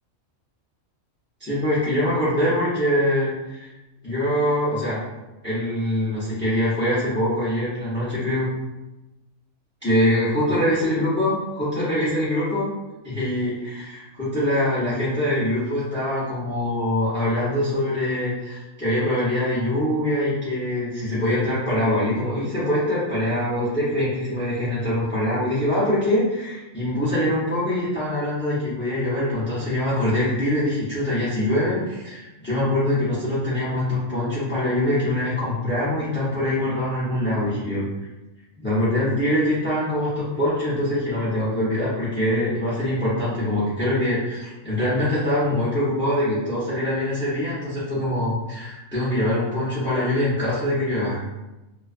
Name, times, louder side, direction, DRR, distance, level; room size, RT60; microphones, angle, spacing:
voice 1, 1.4-3.7 4.0-5.0 5.4-8.5 9.8-12.7 13.0-37.9 38.6-51.2, left 1 dB, 15° left, -10 dB, 0.3 m, -23 dB
2.3 x 2.3 x 2.4 m, 1.0 s
omnidirectional pair, 1.4 m